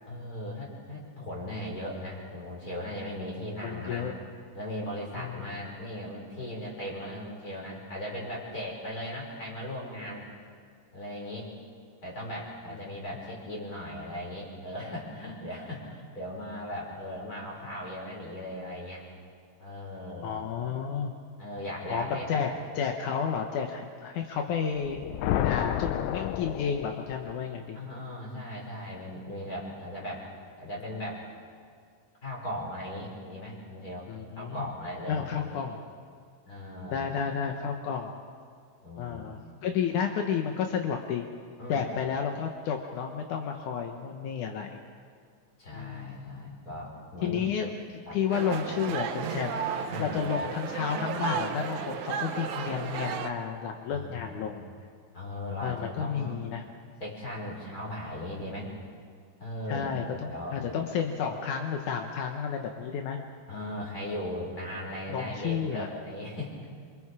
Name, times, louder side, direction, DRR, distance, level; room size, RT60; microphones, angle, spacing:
voice 1, 0.1-4.1 4.5-10.3 10.9-11.5 12.0-19.1 19.6-20.4 21.4-22.4 27.7-30.2 30.6-31.2 32.2-34.1 34.4-35.7 36.5-37.2 38.8-39.2 41.6-41.9 45.6-47.4 48.1-48.2 49.9-50.3 53.9-54.5 55.1-56.4 57.0-58.7 59.4-60.0 60.2-60.8 63.5-66.5, left 1 dB, 20° left, -3 dB, 5.6 m, -38 dB
voice 2, 3.6-4.1 5.2-5.5 12.9-13.0 20.2-21.1 21.9-25.0 25.4-27.8 34.1-34.7 35.1-35.8 36.9-38.1 39.0-41.3 41.7-44.8 45.7-46.1 47.2-49.6 50.0-54.6 55.6-56.6 59.7-63.2 65.1-65.9, left 7 dB, 70° left, 3 dB, 1.9 m, -31 dB
sound 1, 24.8-27.4, left 12 dB, 90° left, 3.0 m, -30 dB
sound 2, 48.3-53.3, right 7 dB, 90° right, 1.6 m, -33 dB
27.5 x 25.5 x 4.9 m, 2.1 s
omnidirectional pair, 5.0 m